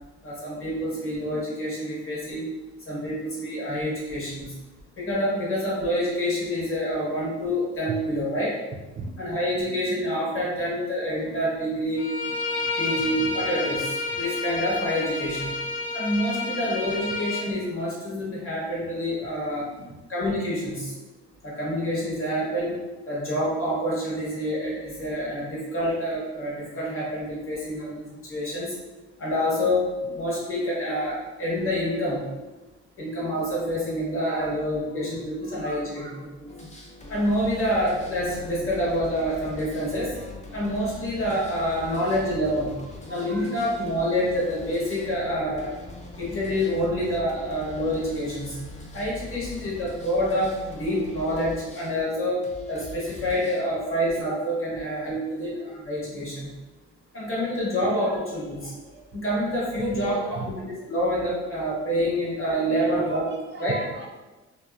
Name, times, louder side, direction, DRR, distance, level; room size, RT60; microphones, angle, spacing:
voice 1, 0.2-2.4 2.9-4.5 5.0-8.6 9.2-12.0 12.8-15.6 15.9-19.7 20.1-20.9 21.4-22.8 23.1-28.7 29.2-29.9 30.1-32.2 33.0-36.0 36.4-36.5 37.1-40.1 40.5-42.7 43.1-45.7 46.2-48.6 48.9-56.5 57.1-58.7 59.1-63.3 63.6-63.8, equal, 45° left, -6 dB, 1.2 m, -27 dB
voice 2, 9.0-9.7 10.3-10.7 11.1-11.3 12.9-13.7 17.0-17.2 19.7-20.0 34.2-34.6 35.0-35.1 35.4-36.2 41.8-42.7 43.1-43.8 50.3-50.4 58.0-59.1 59.7-60.5 62.8-64.1, right 3 dB, 40° right, -1 dB, 0.4 m, -40 dB
Bowed string instrument, 12.0-17.5, left 3 dB, 75° left, 0.6 m, -30 dB
sound 1, 36.5-54.2, left 2 dB, 25° left, 0.5 m, -42 dB
2.6 x 2.2 x 2.3 m, 1.2 s
cardioid pair, 90°, 30 cm